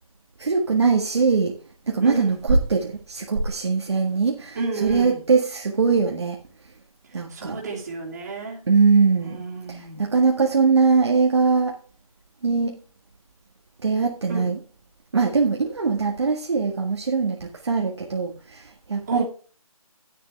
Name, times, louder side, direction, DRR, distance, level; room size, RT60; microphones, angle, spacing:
voice 1, 0.4-1.6 1.9-6.4 7.1-7.6 8.7-9.4 9.7-11.8 12.4-12.8 13.8-14.6 15.1-19.2, right 4 dB, 45° right, 1.6 m, -21 dB
voice 2, 2.0-2.3 4.6-5.2 7.3-8.7 9.2-10.0 14.3-14.5 19.1-19.2, right 4 dB, 25° right, 2.9 m, -30 dB
11.0 x 9.9 x 3.4 m
figure-of-eight pair, 170°, 19 cm